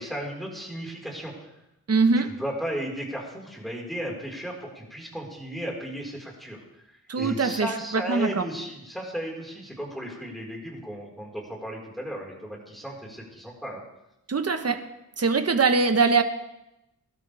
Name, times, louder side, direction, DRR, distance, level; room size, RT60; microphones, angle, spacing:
voice 1, 0.0-1.5 2.2-13.8, equal, ahead, -2 dB, 4.8 m, -35 dB
voice 2, 1.9-2.4 7.1-8.4 14.3-14.9 15.2-16.2, right 4 dB, 45° right, 8 dB, 1.3 m, -22 dB
21.5 x 12.5 x 3.5 m, 0.90 s
cardioid pair, 70°, 35 cm